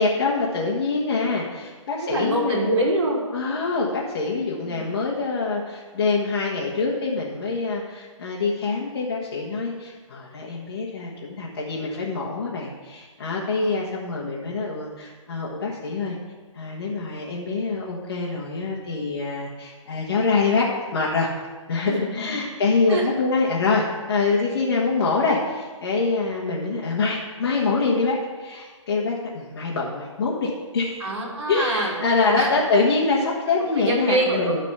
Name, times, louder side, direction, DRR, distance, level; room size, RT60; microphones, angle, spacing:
voice 1, 0.0-2.7 3.3-16.2 16.5-20.6 20.9-21.3 21.7-31.0 31.5-34.6, left 4 dB, 45° left, -5 dB, 1.5 m, -25 dB
voice 2, 2.1-3.2 4.6-4.8 13.6-13.8 21.8-22.2 22.9-23.1 31.0-31.9 32.2-32.5 33.7-34.6, right 1 dB, 55° right, -3 dB, 2.9 m, -25 dB
12.0 x 4.2 x 6.8 m, 1.4 s
hypercardioid pair, 160°, 17 cm